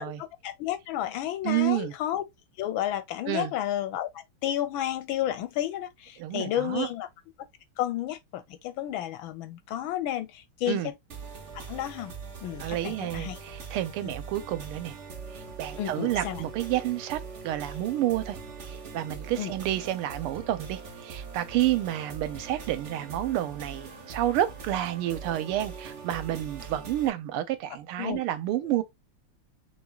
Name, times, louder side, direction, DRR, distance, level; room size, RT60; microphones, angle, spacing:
voice 1, 0.0-2.2 2.6-7.1 7.8-10.9 11.5-12.1 12.4-13.4 14.0-14.1 15.8-16.4 19.4-19.5 28.0-28.2, left 12 dB, 75° left, 1.3 m, -32 dB
voice 2, 1.4-1.9 3.3-3.5 6.2-6.9 10.7-10.9 12.6-15.0 15.3-18.4 18.6-28.8, right 13 dB, 85° right, 1.6 m, -30 dB
sound 1, 11.1-27.1, right 5 dB, 45° right, 1.0 m, -42 dB
6.3 x 3.4 x 2.3 m
omnidirectional pair, 2.4 m